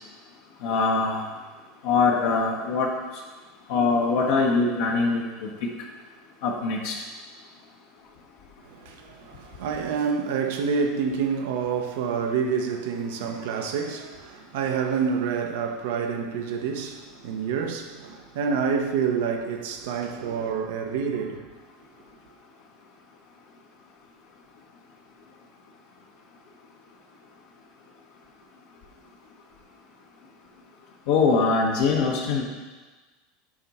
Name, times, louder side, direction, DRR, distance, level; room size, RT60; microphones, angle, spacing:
voice 1, 0.6-1.2 1.8-2.9 3.7-5.5 6.4-6.9 31.1-32.4, left 4 dB, 70° left, 1.1 m, -22 dB
voice 2, 8.6-21.5, right 6 dB, 75° right, 0.8 m, -28 dB
7.4 x 4.6 x 4.2 m
hypercardioid pair, 105°, 0 cm